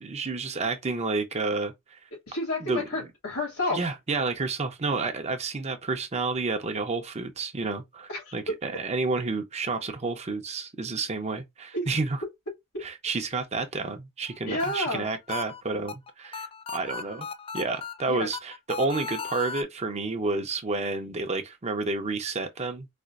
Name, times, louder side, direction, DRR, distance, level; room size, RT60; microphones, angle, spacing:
voice 1, 0.0-2.0 2.6-3.1 3.7-12.2 12.8-17.3 17.5-22.9, right 3 dB, 30° right, 0.6 m, -30 dB
voice 2, 2.1-3.8 8.1-8.3 11.7-11.8 12.7-12.8 14.5-15.1 18.1-18.3, left 2 dB, 85° left, 2.4 m, -30 dB
sound 1, 14.3-19.6, left 6 dB, 25° left, 0.3 m, -37 dB
4.2 x 2.4 x 2.4 m
head